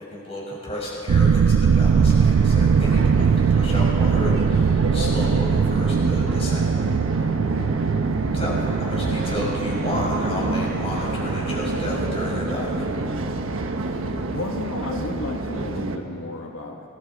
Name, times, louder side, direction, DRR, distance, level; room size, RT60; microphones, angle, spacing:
voice 1, 0.0-6.6 8.2-12.7, left 1 dB, 30° left, -4 dB, 6.1 m, -32 dB
sound 1, 1.1-15.6 15.9-16.0, right 6 dB, 90° right, 0.4 m, -22 dB
sound 2, 1.7-16.0, right 1 dB, 70° right, 1.4 m, -28 dB
voice 2, 14.3-16.9, left 2 dB, 90° left, 2 dB, 1.5 m, -32 dB
29.0 x 20.0 x 4.8 m, 2.7 s
head